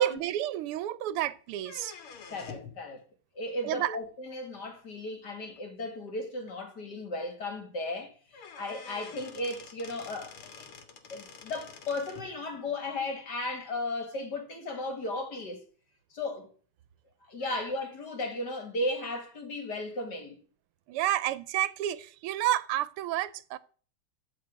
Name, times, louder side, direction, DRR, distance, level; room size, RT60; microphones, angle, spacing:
voice 1, 0.0-1.9 3.6-4.0 20.9-23.6, right 13 dB, 90° right, 1.6 m, -30 dB
sound 1, 1.6-2.8 4.5-4.6 5.6-5.7 6.1-6.2 6.5-6.6 7.9-8.0 8.3-12.3, left 6 dB, 80° left, 2.5 m, -47 dB
voice 2, 2.3-3.0 3.3-10.7 11.1-15.6 16.1-16.5 17.2-20.4, left 2 dB, 50° left, 2.7 m, -35 dB
13.0 x 4.7 x 8.7 m
omnidirectional pair, 2.4 m